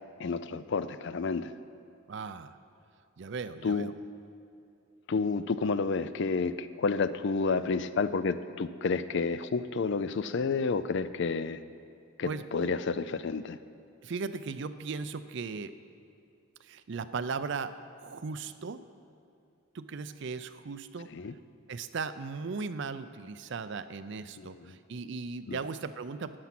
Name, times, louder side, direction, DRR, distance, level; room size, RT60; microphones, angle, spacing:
voice 1, 0.2-1.5 3.6-3.9 5.1-11.6 12.2-13.6 21.1-21.3 24.4-24.7 25.5-25.6, left 4 dB, 55° left, 14 dB, 0.4 m, -30 dB
voice 2, 2.1-2.6 3.2-3.9 12.3-12.7 14.0-15.7 16.6-18.8 19.7-21.1 21.7-26.4, right 4 dB, 55° right, 12 dB, 0.5 m, -37 dB
13.0 x 9.6 x 6.0 m, 2.6 s
head